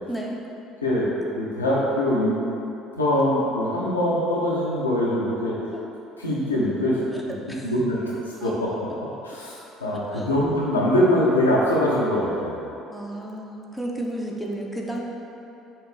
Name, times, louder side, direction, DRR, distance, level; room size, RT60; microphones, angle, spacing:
voice 1, 0.8-2.3 2.9-5.6 6.2-7.0 7.6-8.0 8.3-8.9 9.2-12.6, left 1 dB, 85° left, -6 dB, 0.6 m, -23 dB
voice 2, 12.9-15.0, right 1 dB, ahead, -2 dB, 0.6 m, -32 dB
5.8 x 2.6 x 3.2 m, 2.9 s
figure-of-eight pair, 55°, 0 cm